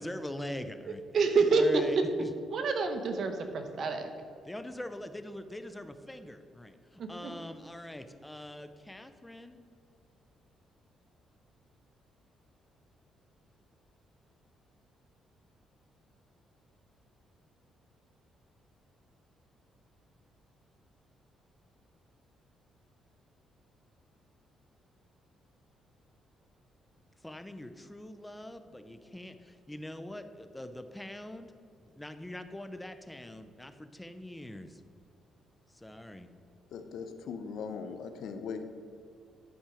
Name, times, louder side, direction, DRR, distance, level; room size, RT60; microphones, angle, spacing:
voice 1, 0.0-1.0 1.5-2.3 4.4-9.6 27.2-31.5 31.8-34.8 35.7-36.3, left 1 dB, 10° left, 9 dB, 0.6 m, -43 dB
voice 2, 1.1-2.1 2.5-4.1 7.0-7.3, right 4 dB, 60° right, 6 dB, 0.9 m, -27 dB
voice 3, 36.7-38.7, left 5 dB, 75° left, 8 dB, 0.7 m, -39 dB
10.5 x 4.4 x 5.0 m, 2.5 s
cardioid pair, 90°, 0 cm